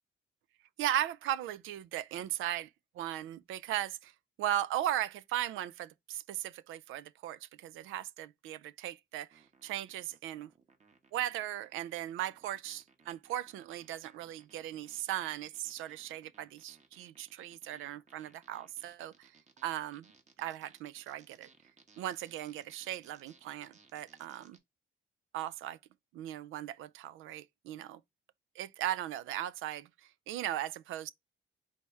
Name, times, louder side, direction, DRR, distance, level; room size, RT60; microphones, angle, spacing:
voice 1, 0.8-2.7 3.0-4.1 4.4-10.5 11.1-19.3 19.6-20.1 20.4-21.5 22.0-24.6 25.3-25.8 26.1-28.0 28.6-29.9 30.3-31.1, right 12 dB, 85° right, 0.4 m, -37 dB
sound 1, 9.3-24.6, right 4 dB, 35° right, 1.1 m, -64 dB
4.1 x 3.5 x 3.2 m
cardioid pair, 90°, 20 cm